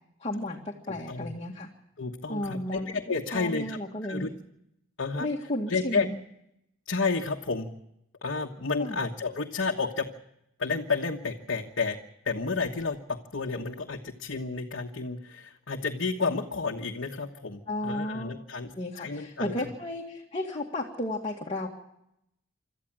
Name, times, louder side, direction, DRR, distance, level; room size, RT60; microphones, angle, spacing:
voice 1, 0.2-1.7 2.3-2.9 3.3-4.3 5.2-6.1 8.8-9.0 17.7-18.3 18.8-21.7, left 1 dB, 30° left, -2 dB, 2.0 m, -33 dB
voice 2, 0.9-1.3 2.0-3.8 4.1-4.3 5.0-5.3 5.7-6.1 6.9-7.7 8.2-10.1 10.6-12.0 12.2-18.7 19.0-19.5, left 4 dB, 70° left, 0 dB, 1.3 m, -31 dB
26.5 x 13.5 x 7.4 m, 0.80 s
head